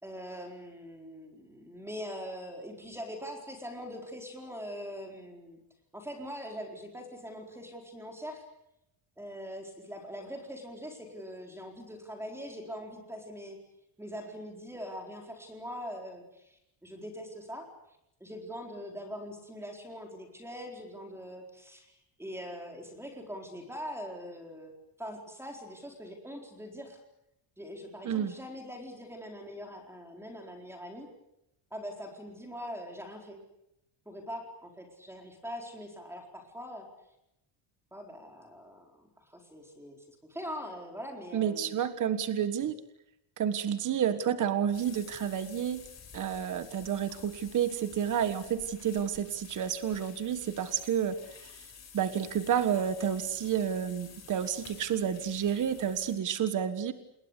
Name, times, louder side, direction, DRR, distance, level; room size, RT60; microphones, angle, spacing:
voice 1, 0.0-5.6 5.9-8.4 9.2-13.6 14.0-17.7 18.2-24.7 25.0-27.0 27.6-31.1 31.7-33.4 34.1-36.9 37.9-41.8, equal, 5° right, 3 dB, 4.3 m, -42 dB
voice 2, 41.3-42.7 43.4-45.8 46.1-51.2 51.9-56.9, right 8 dB, 40° right, 11 dB, 1.5 m, -30 dB
sound 1, 44.7-56.1, left 6 dB, 30° left, 4.6 m, -51 dB
28.0 x 21.0 x 8.2 m, 0.85 s
cardioid pair, 175°, 49 cm